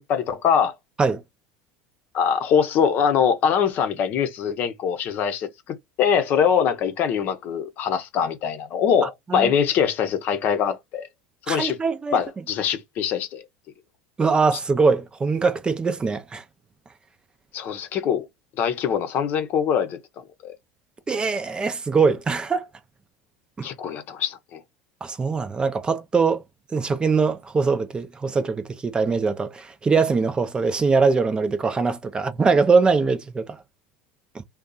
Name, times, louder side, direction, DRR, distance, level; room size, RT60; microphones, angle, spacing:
voice 1, 0.1-0.7 2.1-11.1 11.5-11.8 12.1-13.4 17.5-18.3 18.6-20.0 20.4-20.5 23.6-24.6, left 7 dB, 50° left, 0.7 m, -23 dB
voice 2, 11.5-12.2 14.2-16.4 21.1-22.7 23.6-23.7 25.0-26.4 26.7-33.6 34.3-34.4, right 4 dB, 20° right, 0.5 m, -22 dB
2.6 x 2.3 x 3.8 m
hypercardioid pair, 85°, 4 cm